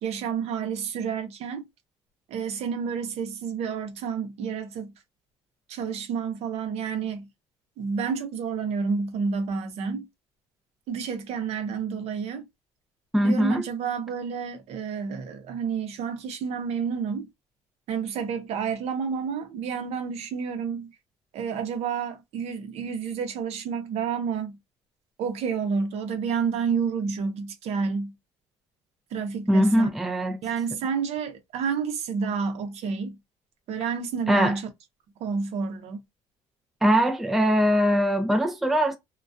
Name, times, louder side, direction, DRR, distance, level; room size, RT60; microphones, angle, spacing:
voice 1, 0.0-1.7 2.3-4.9 5.7-7.3 7.8-10.1 10.9-12.5 13.2-17.3 17.9-20.9 21.3-24.6 25.2-28.1 29.1-29.9 30.4-33.2 33.7-34.7 35.2-36.0, right 6 dB, 65° right, 0.7 m, -29 dB
voice 2, 13.1-13.7 29.5-30.4 34.3-34.6 36.8-39.0, equal, ahead, 0.4 m, -21 dB
2.3 x 2.2 x 2.4 m
cardioid pair, 115°, 12 cm